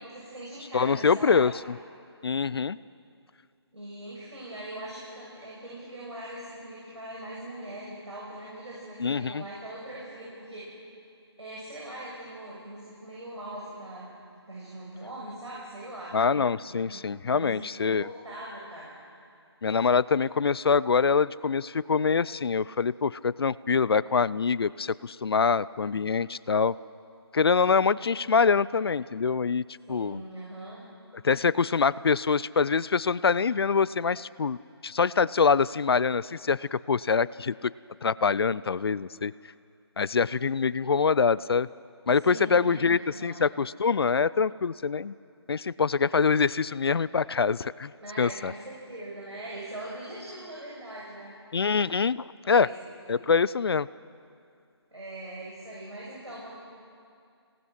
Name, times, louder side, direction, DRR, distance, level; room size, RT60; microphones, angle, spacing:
voice 1, 0.0-1.5 3.7-10.6 11.4-14.1 14.5-16.1 16.6-18.9 29.9-30.8 42.2-43.4 48.0-51.3 52.4-52.7 53.0-53.1 54.9-56.5, right 1 dB, 85° right, -5 dB, 6.8 m, -41 dB
voice 2, 0.7-1.5 2.2-2.8 9.0-9.4 16.1-18.1 19.6-26.7 27.3-30.2 31.2-37.7 38.0-39.3 40.0-41.7 42.1-45.1 45.5-47.9 48.2-48.5 51.5-52.7 53.1-53.9, left 5 dB, 60° left, 20 dB, 0.5 m, -25 dB
27.0 x 18.5 x 6.3 m, 2.4 s
figure-of-eight pair, 155°, 14 cm